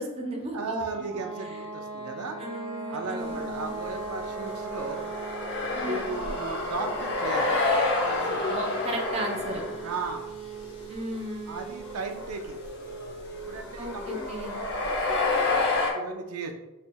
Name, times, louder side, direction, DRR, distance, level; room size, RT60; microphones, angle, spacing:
voice 1, 0.0-0.8 1.4-1.7 2.4-3.8 5.7-6.3 8.5-9.6 10.9-11.5 13.8-14.6, right 1 dB, 25° right, 1 dB, 0.5 m, -35 dB
voice 2, 0.5-2.4 2.9-5.1 5.8-7.5 8.1-8.6 9.8-10.3 11.5-12.6 13.5-16.6, right 3 dB, 80° right, 4 dB, 0.4 m, -36 dB
sound 1, 0.8-13.6, right 4 dB, 30° left, 1.2 m, -40 dB
sound 2, 3.3-10.0 10.5-10.9 11.1-11.2 11.8-15.9, left 3 dB, 55° left, 0.7 m, -29 dB
4.3 x 3.2 x 2.2 m, 1.1 s
head